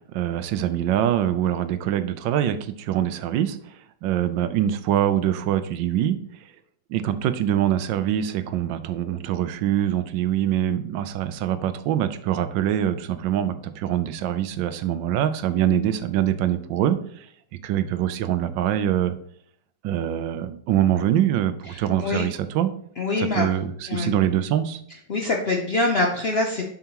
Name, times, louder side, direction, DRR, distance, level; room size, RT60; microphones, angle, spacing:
voice 1, 0.0-3.6 4.0-6.2 6.9-17.3 17.6-19.2 19.8-22.7 23.2-24.8, right 11 dB, 85° right, 12 dB, 1.3 m, -24 dB
voice 2, 21.7-22.2 23.0-23.5 23.9-24.1 25.1-26.7, left 2 dB, 60° left, 1 dB, 0.6 m, -24 dB
7.3 x 5.7 x 2.9 m, 0.65 s
omnidirectional pair, 2.0 m